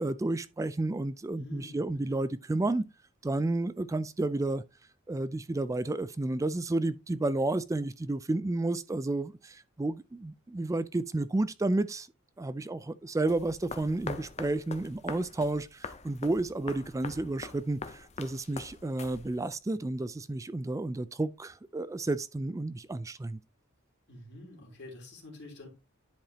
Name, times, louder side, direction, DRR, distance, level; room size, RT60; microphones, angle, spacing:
voice 1, 0.0-2.8 3.2-4.6 5.1-12.1 12.4-23.4, right 2 dB, 15° right, 0.3 m, -31 dB
voice 2, 1.3-2.2 24.1-25.7, left 2 dB, 55° left, 3.1 m, -48 dB
sound 1, 13.3-19.6, left 4 dB, 30° left, 0.6 m, -43 dB
10.5 x 4.8 x 2.8 m
head